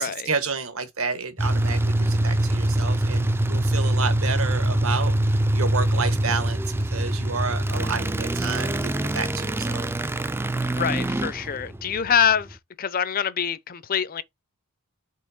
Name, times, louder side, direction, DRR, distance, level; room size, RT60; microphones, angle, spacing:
voice 1, 0.0-6.6 6.9-9.9, right 4 dB, 75° right, 1.4 m, -30 dB
sound 1, 1.4-12.5, right 1 dB, 10° right, 0.4 m, -24 dB
voice 2, 10.8-14.2, left 7 dB, 40° left, 0.6 m, -25 dB
5.5 x 3.5 x 4.9 m
head